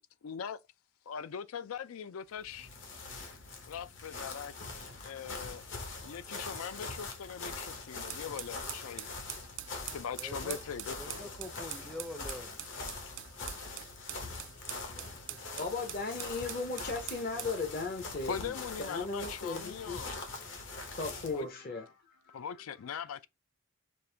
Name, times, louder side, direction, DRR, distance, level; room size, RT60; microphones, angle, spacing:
voice 1, 0.2-0.6 1.1-2.7 3.7-4.5 5.0-5.6 6.0-9.1 9.9-11.3 18.3-20.2 21.3-21.5 22.3-23.3, left 7 dB, 90° left, 0.4 m, -41 dB
sound 1, 2.3-21.4, left 3 dB, 65° left, 1.1 m, -43 dB
sound 2, 8.1-17.6, right 14 dB, 65° right, 0.4 m, -44 dB
voice 2, 10.1-10.6 10.9-12.6 14.9-15.6, left 1 dB, 5° left, 0.4 m, -45 dB
voice 3, 15.6-18.5 18.8-20.0 20.9-22.4, left 3 dB, 45° left, 0.6 m, -37 dB
5.3 x 2.5 x 3.3 m
head